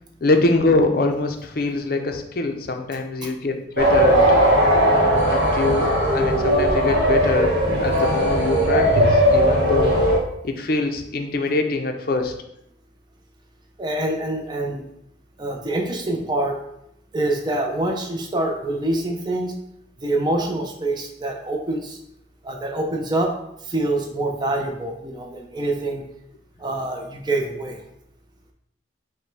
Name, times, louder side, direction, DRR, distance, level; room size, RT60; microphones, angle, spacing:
voice 1, 0.2-4.3 5.0-9.9 10.4-12.3, left 2 dB, 50° left, 5 dB, 0.5 m, -24 dB
sound 1, 3.8-10.2, equal, 55° right, 1.0 m, -18 dB
voice 2, 13.8-14.8 15.4-16.6 17.1-19.5 20.0-22.0 22.4-23.3 23.6-26.0 26.6-27.8, right 1 dB, 25° right, 2 dB, 0.5 m, -25 dB
5.1 x 2.2 x 4.6 m, 0.77 s
head